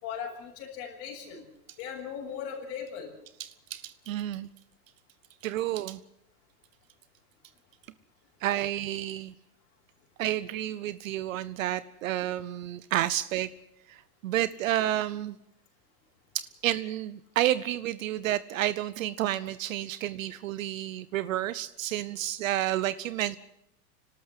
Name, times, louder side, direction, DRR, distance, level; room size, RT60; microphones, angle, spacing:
voice 1, 0.0-1.4 1.8-3.1, left 7 dB, 35° left, -2 dB, 6.3 m, -38 dB
voice 2, 3.4-4.5 5.4-6.0 8.4-9.3 10.2-13.5 13.9-15.4 16.3-23.4, right 13 dB, 60° right, 17 dB, 0.8 m, -30 dB
28.5 x 12.5 x 7.8 m, 0.78 s
supercardioid pair, 150°, 45 cm